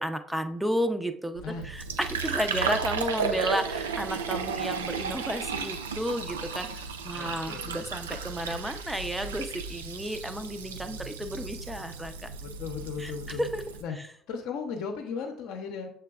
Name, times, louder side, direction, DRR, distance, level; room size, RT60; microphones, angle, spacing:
voice 1, 0.0-12.3 13.0-13.1 13.4-13.6, equal, 5° right, 8 dB, 0.5 m, -32 dB
Fill (with liquid), 1.4-13.8, right 5 dB, 90° right, 0.3 m, -34 dB
voice 2, 7.1-7.8 12.4-13.4 13.8-14.0 14.3-15.9, left 5 dB, 65° left, 3 dB, 0.7 m, -36 dB
6.6 x 3.3 x 2.3 m, 0.62 s
hypercardioid pair, 60°, 0 cm